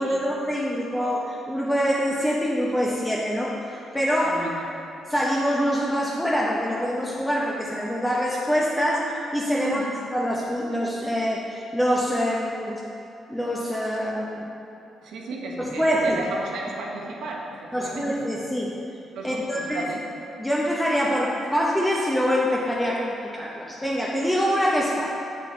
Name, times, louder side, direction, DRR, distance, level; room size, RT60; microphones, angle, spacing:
voice 1, 0.0-4.4 5.1-9.8 10.1-12.8 13.3-14.5 15.6-16.2 17.7-18.7 19.2-19.9 20.4-25.1, equal, 5° left, -4 dB, 0.7 m, -25 dB
voice 2, 4.2-4.7 9.6-9.9 13.9-14.1 15.0-17.5 17.8-18.1 19.1-20.0, right 3 dB, 80° right, -1 dB, 1.0 m, -34 dB
7.5 x 6.8 x 3.1 m, 2.8 s
cardioid pair, 90°, 0 cm